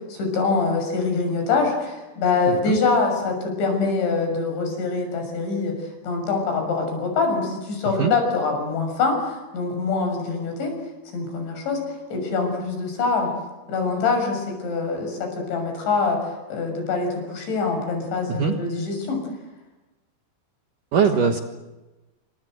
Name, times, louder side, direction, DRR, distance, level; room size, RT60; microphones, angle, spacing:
voice 1, 0.1-5.7 6.0-10.7 11.1-11.8 12.1-13.3 13.7-16.2 16.5-19.2, left 4 dB, 75° left, 4 dB, 9.0 m, -24 dB
voice 2, 2.5-2.8 8.0-8.1 18.3-18.6 20.9-21.4, right 7 dB, 60° right, 4 dB, 2.4 m, -21 dB
29.0 x 26.0 x 7.9 m, 1.1 s
omnidirectional pair, 5.3 m